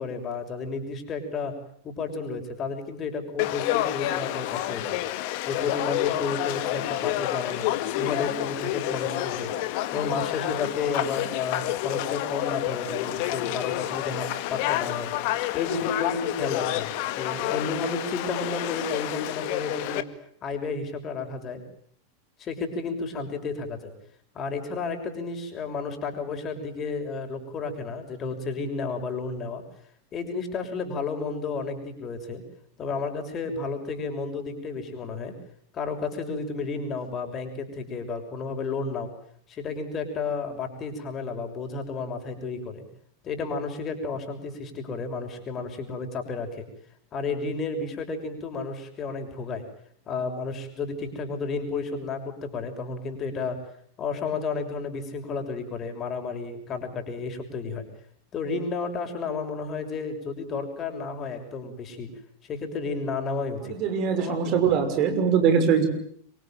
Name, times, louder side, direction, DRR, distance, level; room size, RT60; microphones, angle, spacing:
voice 1, 0.0-1.5 1.8-5.0 5.5-9.5 9.9-15.1 15.5-20.1 20.4-21.6 22.4-23.9 24.3-29.6 30.1-32.4 32.8-35.3 35.7-39.1 39.5-42.8 43.2-46.6 47.1-49.6 50.1-53.6 54.0-57.8 58.3-62.1 62.4-63.8 64.2-64.8, left 4 dB, 30° left, 5 dB, 6.5 m, -32 dB
Conversation / Crowd, 3.4-20.0, left 15 dB, 55° left, 1.9 m, -29 dB
voice 2, 63.7-65.9, right 7 dB, 45° right, 7 dB, 6.1 m, -22 dB
27.5 x 23.5 x 9.2 m, 0.64 s
figure-of-eight pair, 90°, 0 cm